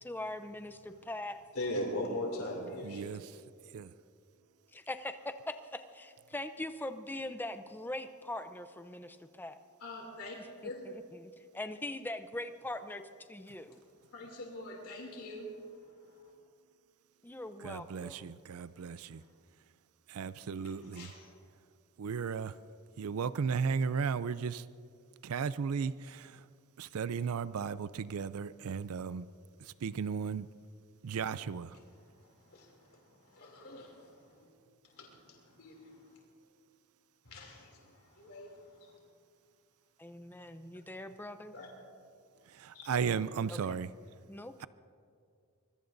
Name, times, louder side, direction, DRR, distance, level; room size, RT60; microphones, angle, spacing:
voice 1, 0.0-1.4 4.7-9.6 10.4-13.0 13.3-13.8 17.2-18.3 40.0-41.5 43.5-43.8 44.3-44.7, left 1 dB, 10° left, 9 dB, 0.6 m, -42 dB
voice 2, 1.5-3.2 9.8-10.4 10.6-10.8 14.1-15.5 20.9-21.1 32.5-33.0 33.3-34.5 35.0-36.0 37.2-38.6 41.5-41.7, left 1 dB, 80° left, -1 dB, 2.8 m, -41 dB
voice 3, 2.8-3.4 3.7-3.9 17.6-19.2 20.1-21.1 22.0-22.6 23.0-24.7 25.2-26.5 26.8-29.3 29.6-30.5 31.0-31.8 42.5-43.9, right 6 dB, 75° right, 16 dB, 0.4 m, -35 dB
24.5 x 21.5 x 2.6 m, 2.3 s
head